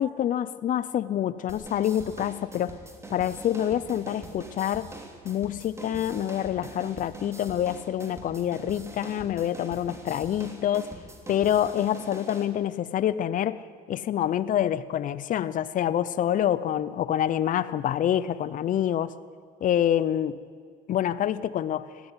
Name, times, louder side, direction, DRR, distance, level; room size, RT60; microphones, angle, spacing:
voice 1, 0.0-2.8 3.1-4.9 5.2-10.9 11.3-13.6 13.9-19.1 19.6-20.3 20.9-21.9, left 10 dB, 50° left, 15 dB, 0.7 m, -26 dB
sound 1, 1.5-12.5, right 2 dB, 15° right, 3.0 m, -43 dB
20.0 x 14.5 x 9.7 m, 2.1 s
cardioid pair, 110°, 17 cm